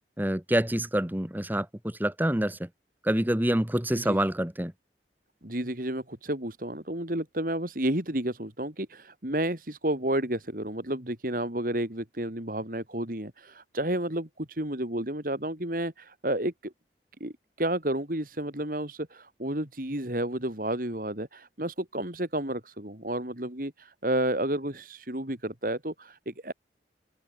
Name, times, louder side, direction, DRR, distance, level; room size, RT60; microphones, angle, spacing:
voice 1, 0.2-2.7 3.0-4.7, right 1 dB, 10° right, 1.3 m, -27 dB
voice 2, 5.4-16.7 17.2-26.5, right 1 dB, 50° right, 3.2 m, -31 dB
open air
head